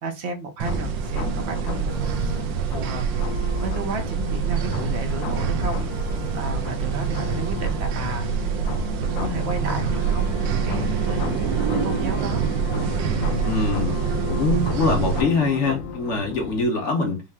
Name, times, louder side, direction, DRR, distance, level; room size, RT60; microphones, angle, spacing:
voice 1, 0.0-3.0 3.6-5.8 6.3-8.3 8.9-10.4 10.6-12.4 16.8-17.0, right 3 dB, 55° right, 0.7 m, -33 dB
sound 1, 0.6-16.6, left 5 dB, 80° left, 1.4 m, -34 dB
sound 2, 0.6-15.2, right 6 dB, 75° right, 1.3 m, -25 dB
voice 2, 13.4-17.2, left 3 dB, 45° left, 1.1 m, -24 dB
5.5 x 2.1 x 3.5 m
omnidirectional pair, 2.1 m